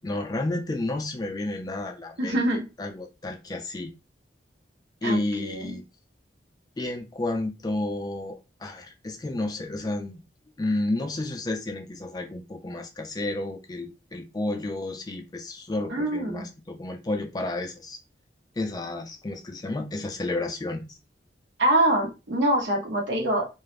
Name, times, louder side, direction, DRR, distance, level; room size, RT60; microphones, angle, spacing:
voice 1, 0.0-2.4 2.8-3.9 5.0-5.8 6.8-10.2 10.6-18.0 18.6-21.0, left 2 dB, 20° left, 0.3 m, -31 dB
voice 2, 2.2-2.6 5.0-5.8 15.9-16.4 21.6-23.4, right 1 dB, 80° right, 1.0 m, -24 dB
2.4 x 2.0 x 3.1 m
head